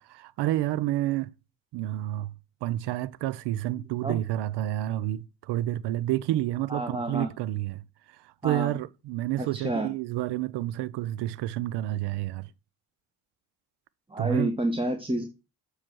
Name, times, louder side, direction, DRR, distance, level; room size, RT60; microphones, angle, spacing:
voice 1, 0.1-1.3 1.7-2.3 2.6-7.8 8.4-12.5 14.2-14.6, right 14 dB, 70° right, 0.5 m, -29 dB
voice 2, 3.8-4.2 6.7-7.3 8.4-8.7 9.4-9.9 14.1-15.3, right 1 dB, 10° right, 1.0 m, -29 dB
7.3 x 3.2 x 6.1 m
hypercardioid pair, 45°, 43 cm